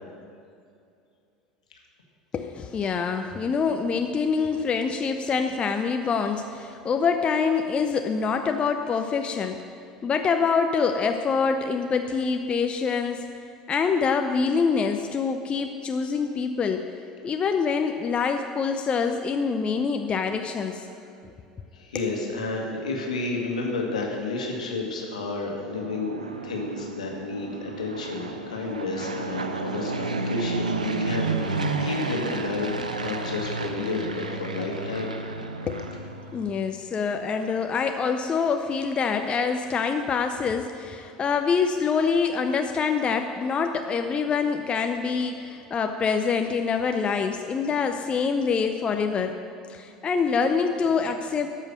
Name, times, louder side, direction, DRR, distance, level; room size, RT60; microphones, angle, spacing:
voice 1, 2.3-9.6 10.0-13.3 13.7-16.9 17.2-20.9 35.7-36.0 36.3-49.4 49.7-51.5, left 5 dB, 25° left, 6 dB, 0.5 m, -25 dB
voice 2, 21.7-26.2 26.4-35.1, left 3 dB, 75° left, 0 dB, 1.6 m, -31 dB
Fixed-wing aircraft airplane, 25.5-36.6, right 3 dB, 80° right, 0.6 m, -31 dB
13.0 x 5.7 x 6.4 m, 2.5 s
figure-of-eight pair, 70°, 4 cm